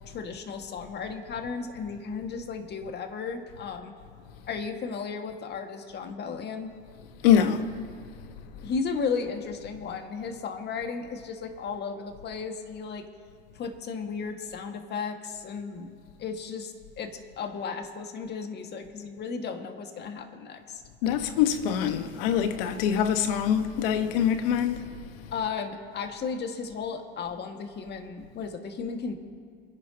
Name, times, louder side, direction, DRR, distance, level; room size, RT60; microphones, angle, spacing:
voice 1, 0.1-3.9 4.5-6.7 8.6-13.1 13.5-15.9 16.2-20.8 25.3-29.2, left 5 dB, 35° left, 1.8 m, -34 dB
voice 2, 7.2-7.7 21.0-25.0, left 9 dB, 65° left, 1.4 m, -24 dB
28.5 x 11.0 x 2.9 m
hypercardioid pair, 95°, 30 cm